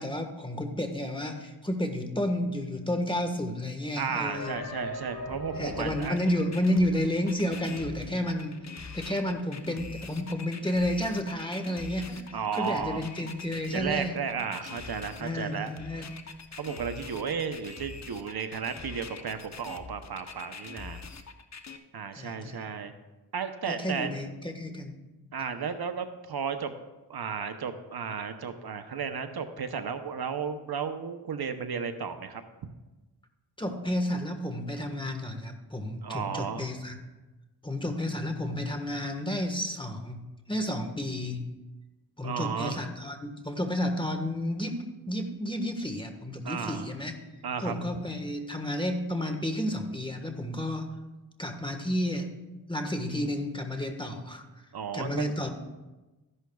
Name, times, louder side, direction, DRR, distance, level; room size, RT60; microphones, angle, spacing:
voice 1, 0.0-4.6 5.5-8.5 8.9-12.3 12.5-14.2 15.2-16.1 22.1-22.7 23.7-25.0 33.6-37.0 37.6-41.5 42.2-47.1 47.6-50.9 51.4-52.3 52.7-54.4 54.9-55.5, left 1 dB, 10° left, 5 dB, 1.4 m, -31 dB
voice 2, 4.0-6.2 12.3-13.0 13.7-15.7 16.6-21.0 21.9-22.9 23.3-24.1 25.3-26.7 27.1-32.4 36.0-36.7 42.2-42.8 46.4-46.9 47.4-47.7 54.7-55.3, right 6 dB, 65° right, 8 dB, 0.8 m, -33 dB
sound 1, 4.2-7.9 8.2-8.3 8.5-8.6 9.2-9.3, left 1 dB, 60° left, 2.8 m, -41 dB
sound 2, 5.8-21.8, left 5 dB, 40° left, 0.9 m, -44 dB
14.0 x 11.0 x 2.3 m, 1.1 s
cardioid pair, 55°, 40 cm